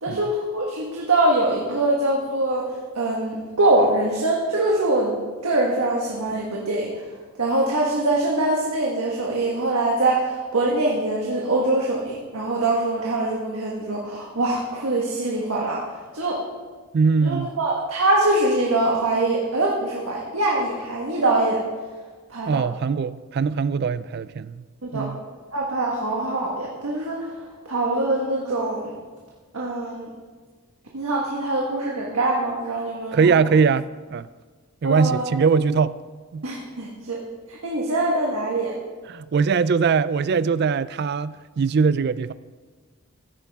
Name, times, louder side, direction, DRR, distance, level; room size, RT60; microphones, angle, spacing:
voice 1, 0.0-2.6 2.9-5.1 5.4-6.9 7.4-15.8 16.1-16.4 17.2-21.6 22.3-22.6 24.8-25.1 25.5-27.3 27.6-28.9 29.5-30.1 30.9-33.2 34.8-35.2 36.4-37.2 37.5-38.7, right 2 dB, 80° right, 1.5 m, -23 dB
voice 2, 16.9-17.5 22.5-24.6 24.9-25.2 33.1-34.3 34.8-36.0 36.3-36.5 39.1-42.3, right 5 dB, 45° right, 0.3 m, -21 dB
14.5 x 9.7 x 3.5 m
head